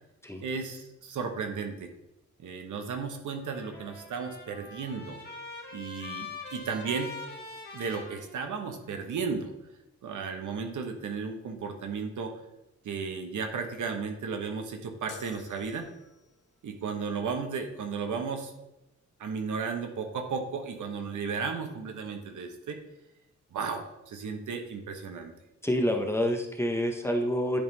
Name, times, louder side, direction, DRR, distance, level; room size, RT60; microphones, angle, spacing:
voice 1, 0.4-1.9 2.4-5.2 5.7-7.1 7.7-9.5 10.0-12.3 12.8-15.9 16.6-18.5 19.2-22.8 23.5-25.3, right 5 dB, 80° right, 5 dB, 1.0 m, -34 dB
Trumpet, 3.3-8.9, left 3 dB, 35° left, 1.9 m, -44 dB
sound 1, 15.1-16.4, left 3 dB, 85° left, 0.7 m, -49 dB
voice 2, 25.6-27.6, equal, 10° left, 2 dB, 0.7 m, -27 dB
10.0 x 3.6 x 3.9 m, 0.92 s
wide cardioid pair, 135°, 30 cm